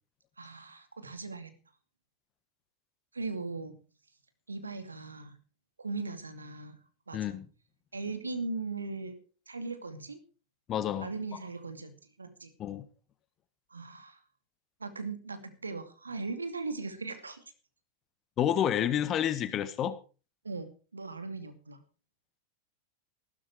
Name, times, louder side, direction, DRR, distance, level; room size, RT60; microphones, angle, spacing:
voice 1, 0.4-1.5 3.1-3.8 4.5-5.4 5.8-6.8 7.1-7.3 7.9-9.2 9.5-10.2 11.0-11.9 12.2-12.5 13.7-14.2 14.8-17.4 20.4-21.8, right 3 dB, 75° right, 9 dB, 2.5 m, -38 dB
voice 2, 7.1-7.4 10.7-11.1 12.6-12.9 18.4-20.0, left 10 dB, 30° left, 12 dB, 1.6 m, -29 dB
15.0 x 13.0 x 4.7 m, 0.36 s
figure-of-eight pair, 90°, 0 cm